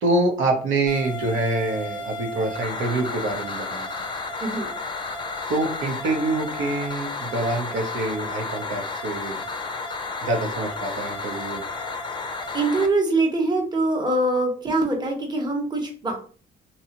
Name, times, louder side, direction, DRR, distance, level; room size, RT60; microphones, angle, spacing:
voice 1, 0.0-3.9 5.5-9.4 10.2-11.6, right 2 dB, 80° right, 2 dB, 0.8 m, -26 dB
sound 1, 0.9-12.9, left 3 dB, 25° left, 0.5 m, -32 dB
voice 2, 4.4-4.7 12.5-16.2, right 2 dB, 20° right, 1 dB, 0.8 m, -23 dB
2.8 x 2.3 x 2.8 m, 0.41 s
cardioid pair, 90°, 20 cm